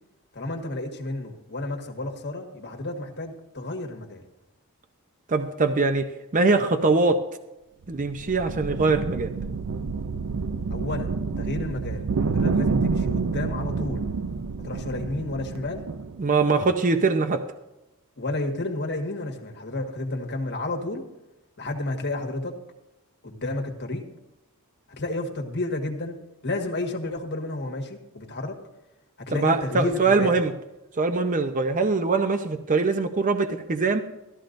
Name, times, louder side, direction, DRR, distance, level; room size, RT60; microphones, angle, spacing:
voice 1, 0.3-4.2 10.7-14.0 14.6-15.8 18.2-21.0 21.6-22.6 23.2-24.1 24.9-26.2 26.4-28.6 29.2-30.4, left 2 dB, 50° left, 2 dB, 1.6 m, -31 dB
voice 2, 5.3-7.2 7.9-9.3 16.2-17.4 29.3-30.5 31.0-34.0, right 3 dB, 35° right, 7 dB, 0.6 m, -22 dB
sound 1, 7.8-16.3, right 4 dB, 80° right, 0.5 m, -28 dB
15.5 x 13.5 x 2.6 m, 0.96 s
head